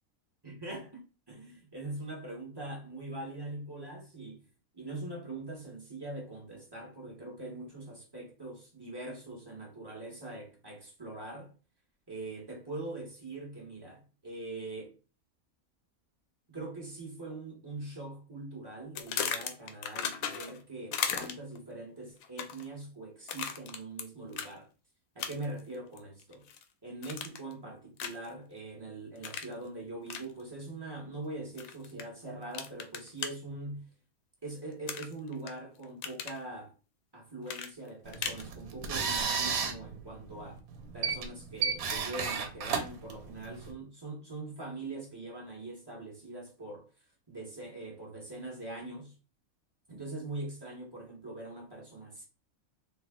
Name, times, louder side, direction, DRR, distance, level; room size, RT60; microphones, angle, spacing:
voice 1, 0.4-1.0 1.3-4.4 4.7-11.5 12.1-14.9 16.5-24.7 25.1-26.5 26.8-33.9 34.4-36.7 37.1-40.6 40.9-46.8 47.3-49.1 49.9-52.2, right 2 dB, 20° right, 1.0 m, -42 dB
sound 1, 19.0-20.6 20.9-21.6 22.2-22.7 23.3-24.0 24.3-24.5 25.2-25.6 26.0-26.6 27.0-27.5 28.0-28.3 29.2-29.5 30.1-30.3 31.6-32.0 32.5-33.3 34.9-35.5 35.8-36.4 37.5-38.5, left 8 dB, 80° left, 1.0 m, -36 dB
sound 2, 38.1-43.7, right 6 dB, 80° right, 1.1 m, -34 dB
3.3 x 2.4 x 3.5 m
omnidirectional pair, 1.5 m